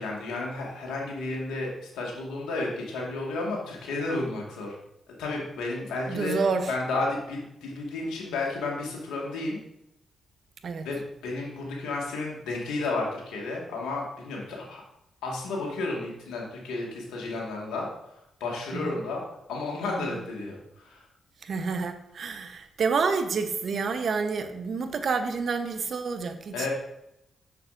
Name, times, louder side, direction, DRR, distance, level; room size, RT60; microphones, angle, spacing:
voice 1, 0.0-4.7 5.2-6.4 6.7-9.6 10.8-14.8 15.2-17.9 18.4-19.2 19.5-20.6 20.8-21.0 26.5-26.7, left 3 dB, 85° left, -2 dB, 1.7 m, -32 dB
voice 2, 6.1-6.7 10.6-10.9 18.7-19.0 20.0-20.2 21.4-26.7, right 5 dB, 65° right, 8 dB, 0.8 m, -29 dB
6.7 x 6.7 x 2.5 m, 0.82 s
supercardioid pair, 50°, 0 cm